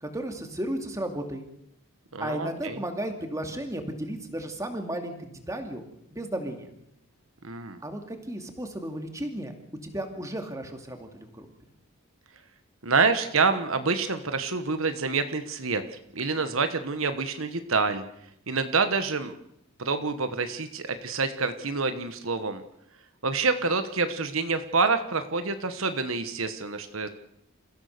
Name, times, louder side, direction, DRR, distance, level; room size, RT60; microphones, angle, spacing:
voice 1, 0.0-1.4 2.2-5.8 6.1-6.7 7.8-9.5 9.8-11.5, right 1 dB, 15° right, 5 dB, 2.5 m, -34 dB
voice 2, 2.1-2.8 7.4-7.8 12.8-15.8 16.1-18.0 18.5-19.3 19.8-22.6 23.2-27.1, right 4 dB, 70° right, 9 dB, 1.3 m, -27 dB
28.5 x 15.5 x 6.7 m, 0.78 s
head